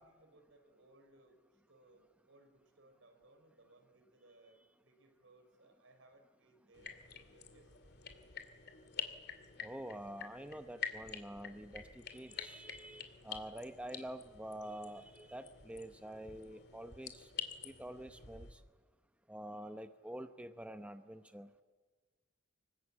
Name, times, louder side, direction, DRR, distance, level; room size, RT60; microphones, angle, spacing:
voice 1, 0.0-1.4 1.7-7.7, right 2 dB, 80° right, 6 dB, 4.9 m, -65 dB
sound 1, 6.7-18.5, left 7 dB, 55° left, 2.5 m, -48 dB
voice 2, 9.6-17.3 17.6-18.6 19.3-21.5, right 1 dB, 5° right, 8 dB, 0.8 m, -47 dB
25.5 x 22.0 x 8.7 m, 1.4 s
head